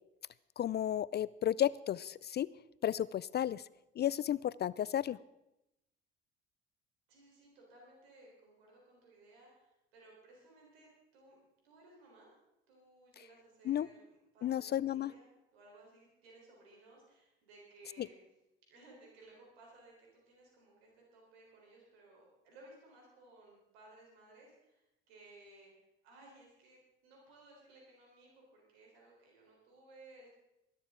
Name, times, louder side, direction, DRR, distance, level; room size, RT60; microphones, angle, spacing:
voice 1, 0.6-2.5 2.8-3.6 4.0-5.2 13.7-13.9 14.4-15.1 18.0-18.1, left 11 dB, 35° left, 20 dB, 0.4 m, -33 dB
voice 2, 7.1-11.4 11.6-12.3 12.7-18.2 18.7-25.7 26.0-30.4, right 2 dB, 85° right, -2 dB, 4.0 m, -60 dB
20.0 x 12.0 x 3.8 m, 0.90 s
hypercardioid pair, 55°, 30 cm